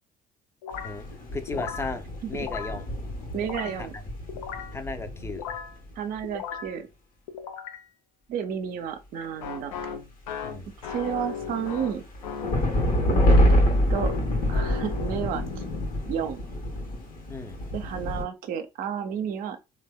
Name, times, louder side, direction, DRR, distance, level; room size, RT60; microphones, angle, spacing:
sound 1, 0.6-1.1 1.5-1.9 2.3-2.8 3.3-3.9 4.3-4.8 5.3-5.8 6.2-6.8 7.3-7.9 9.4-12.7 13.9-15.8, left 7 dB, 75° left, 0.5 m, -37 dB
sound 2, 0.7-5.9 10.9-18.2, equal, 55° left, 1.0 m, -26 dB
voice 1, 1.3-2.9 3.8-3.9 4.7-5.5 10.4-10.7 17.3-17.6, left 3 dB, 15° left, 0.5 m, -35 dB
voice 2, 3.3-3.9 6.0-6.9 8.3-9.7 10.9-12.0 13.1-13.5 13.9-14.1 14.5-15.6 16.1-16.4 17.7-19.6, right 8 dB, 55° right, 0.5 m, -31 dB
3.3 x 2.2 x 2.2 m
hypercardioid pair, 55°, 17 cm